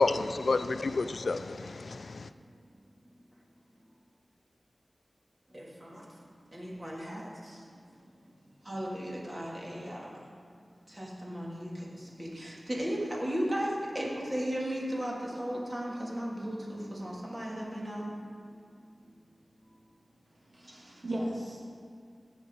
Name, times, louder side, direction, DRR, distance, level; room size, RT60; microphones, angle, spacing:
voice 1, 0.0-2.3, left 3 dB, 75° left, 0.3 m, -29 dB
voice 2, 5.5-6.1 6.5-7.6 8.6-10.2 10.9-18.5 20.5-21.0, equal, 30° right, 2.7 m, -36 dB
voice 3, 20.5-21.6, right 1 dB, 55° right, 2.8 m, -36 dB
16.5 x 6.5 x 4.0 m
cardioid pair, 45°, 0 cm